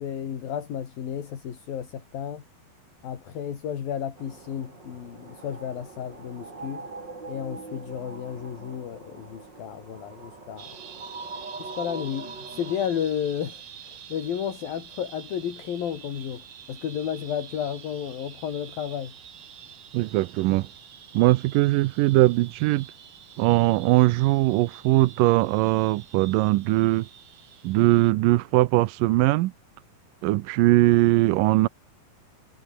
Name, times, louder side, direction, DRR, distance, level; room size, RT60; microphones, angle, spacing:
voice 1, 0.0-2.4 3.0-6.9 7.3-10.7 11.6-13.6 14.1-19.1, left 9 dB, 70° left, 4.4 m, -32 dB
sound 1, 4.2-12.9, right 3 dB, 30° right, 5.0 m, -42 dB
sound 2, 10.6-28.1, right 9 dB, 50° right, 2.8 m, -47 dB
voice 2, 19.9-20.7 21.1-22.9 23.4-27.1 27.6-29.5 30.2-31.7, right 18 dB, 80° right, 2.1 m, -20 dB
omnidirectional pair, 4.3 m